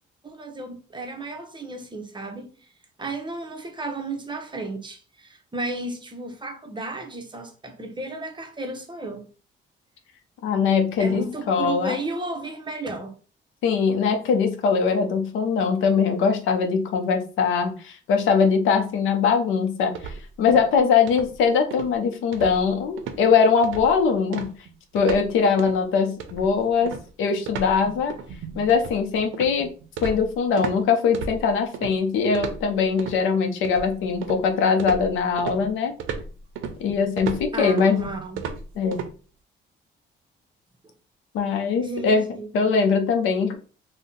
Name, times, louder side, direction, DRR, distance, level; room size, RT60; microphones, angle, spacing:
voice 1, 0.2-2.5 3.0-9.3 11.0-13.1 37.5-38.4 41.8-42.5, right 2 dB, 25° right, 0.7 m, -33 dB
voice 2, 10.4-12.0 13.6-24.5 24.9-26.9 27.2-28.1 28.6-29.7 30.0-35.9 36.8-38.0 38.8-39.0 41.3-42.3 42.5-43.6, left 5 dB, 90° left, 0.6 m, -21 dB
sound 1, 19.9-20.8 21.1-21.4 21.7-21.9 22.3-22.7 23.0-23.2 23.6-24.0 24.3-25.3 25.6-25.8 26.2-30.8 31.1-31.9 32.3-33.2 33.6-34.5 34.8-39.1, right 6 dB, 80° right, 0.5 m, -34 dB
2.6 x 2.1 x 3.8 m
cardioid pair, 90°, 20 cm